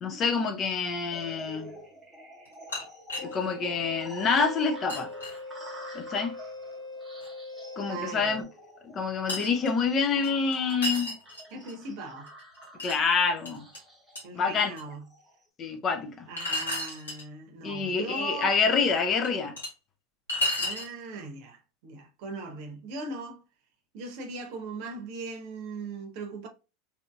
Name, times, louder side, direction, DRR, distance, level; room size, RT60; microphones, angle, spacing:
voice 1, 0.0-1.8 3.2-5.1 5.9-6.3 7.8-8.5 8.8-11.1 12.8-13.7 14.3-14.7 15.6-16.3 17.6-19.6, left 5 dB, 35° left, 0.6 m, -27 dB
sound 1, 1.1-15.4, right 1 dB, 10° right, 1.1 m, -49 dB
sound 2, 2.5-3.4 3.9-4.0 4.4-4.5 4.9-5.4 7.2-7.3 8.1-8.2 9.3-9.7 10.2-11.7 12.3-13.0 13.5-13.8 14.2-14.3 14.8-14.9 16.4-17.2 18.6-18.7 19.2-19.7 20.3-20.9, left 1 dB, 85° left, 1.3 m, -32 dB
sound 3, 3.1-8.4, left 3 dB, 60° left, 1.1 m, -41 dB
voice 2, 7.9-8.4 11.5-12.3 14.2-15.1 16.3-18.6 20.6-23.4 23.9-26.5, right 3 dB, 55° right, 0.8 m, -39 dB
2.8 x 2.6 x 2.2 m
hypercardioid pair, 85°, 0 cm